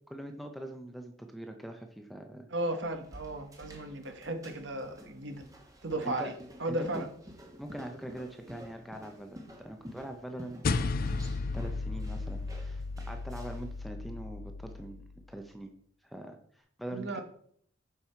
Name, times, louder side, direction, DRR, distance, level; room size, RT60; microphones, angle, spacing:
voice 1, 0.1-2.5 6.0-6.3 6.7-7.1 7.6-11.3 11.5-15.0 15.3-15.7 16.0-17.2, right 1 dB, ahead, 4 dB, 0.6 m, -43 dB
voice 2, 2.5-5.4 5.8-6.3 6.6-7.1 16.9-17.2, right 1 dB, 65° right, 6 dB, 1.1 m, -35 dB
sound 1, 2.8-13.7, equal, 15° right, 1.2 m, -51 dB
sound 2, 10.6-15.3, left 3 dB, 45° left, 0.4 m, -34 dB
7.1 x 5.5 x 4.5 m, 0.63 s
head